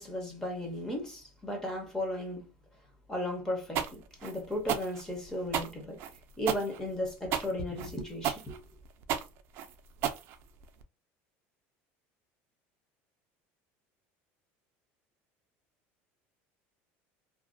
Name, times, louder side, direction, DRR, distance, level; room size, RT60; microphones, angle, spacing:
voice 1, 0.0-2.5 3.1-6.0 6.4-8.6, left 1 dB, 10° left, 0.6 m, -35 dB
sound 1, 3.8-10.8, right 9 dB, 45° right, 0.3 m, -33 dB
2.5 x 2.1 x 2.5 m
cardioid pair, 170°, 5 cm